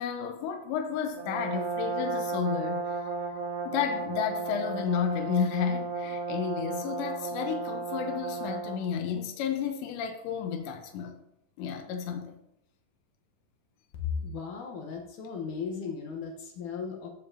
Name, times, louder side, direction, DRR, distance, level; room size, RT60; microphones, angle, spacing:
voice 1, 0.0-2.9 3.6-11.2 11.6-12.4, left 7 dB, 90° left, 3.1 m, -32 dB
Brass instrument, 1.1-8.9, right 4 dB, 75° right, 3.3 m, -34 dB
voice 2, 14.0-17.1, left 6 dB, 70° left, 1.9 m, -36 dB
14.5 x 7.0 x 2.8 m
omnidirectional pair, 5.0 m